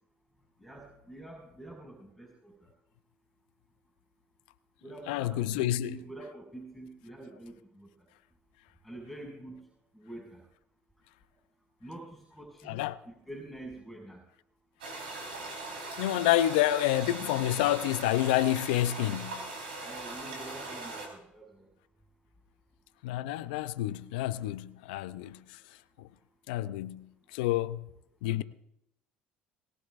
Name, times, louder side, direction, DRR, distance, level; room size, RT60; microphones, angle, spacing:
voice 1, 0.6-2.5 4.8-7.9 8.8-9.7 9.9-10.4 11.8-12.8 13.1-14.2 19.8-21.7, right 2 dB, ahead, 6.0 m, -46 dB
voice 2, 5.1-6.0 12.7-13.0 16.0-19.4 23.0-25.4 26.5-27.9 28.2-28.4, left 14 dB, 75° left, 0.6 m, -28 dB
sound 1, 14.8-21.1, right 2 dB, 90° right, 4.5 m, -40 dB
21.0 x 18.5 x 2.6 m
hypercardioid pair, 65°, 5 cm